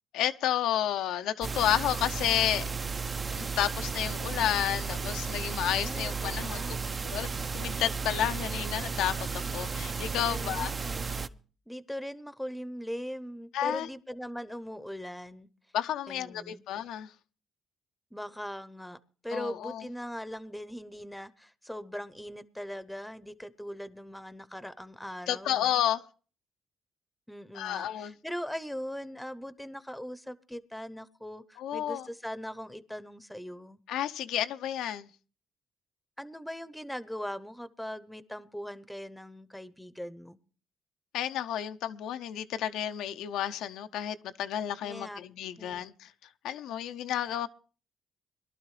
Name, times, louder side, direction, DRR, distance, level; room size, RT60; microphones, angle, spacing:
voice 1, 0.1-2.6 3.4-6.8 7.0-7.3 7.5-10.7 13.5-13.9 15.7-17.1 19.3-19.8 25.3-26.0 27.5-28.1 31.6-32.1 33.9-35.1 41.1-46.1 46.4-47.5, left 11 dB, 85° left, 0.6 m, -31 dB
sound 1, 1.4-11.3, right 5 dB, 35° right, 0.6 m, -34 dB
voice 2, 5.8-6.8 10.3-11.3 11.7-15.5 16.1-16.6 18.1-19.0 19.2-25.8 27.3-33.8 36.2-40.4 44.8-45.2 45.6-45.9, equal, 5° left, 0.8 m, -40 dB
22.0 x 12.0 x 3.3 m
cardioid pair, 85°, 0 cm